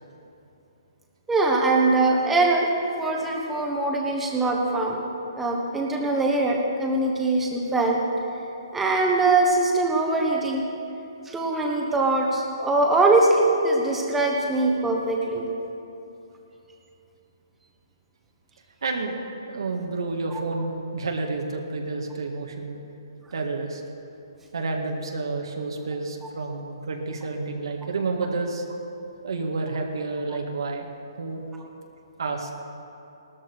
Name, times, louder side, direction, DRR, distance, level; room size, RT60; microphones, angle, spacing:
voice 1, 1.3-2.7 3.0-5.0 5.4-8.0 8.7-10.7 11.2-15.5, right 2 dB, 5° right, -1 dB, 1.3 m, -22 dB
voice 2, 18.8-19.1 19.5-22.8 23.3-23.8 24.5-28.6 29.2-30.9 31.2-31.4 32.2-32.5, right 3 dB, 75° right, 1 dB, 1.9 m, -30 dB
18.0 x 13.0 x 4.7 m, 2.8 s
hypercardioid pair, 165°, 2 cm